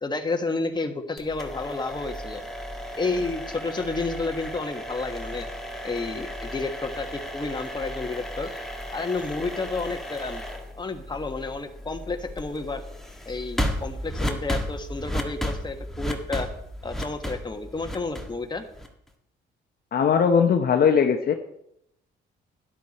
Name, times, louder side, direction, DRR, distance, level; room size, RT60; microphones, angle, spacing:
voice 1, 0.0-2.4 3.0-5.5 5.8-8.6 8.9-10.4 10.8-12.8 13.2-16.5 16.8-18.6, left 3 dB, 20° left, 5 dB, 1.5 m, -31 dB
sound 1, 1.2-19.1, equal, ahead, 1.6 m, -34 dB
voice 2, 19.9-21.3, left 6 dB, 50° left, 5 dB, 1.0 m, -19 dB
12.0 x 10.5 x 4.3 m, 0.77 s
cardioid pair, 90°, 20 cm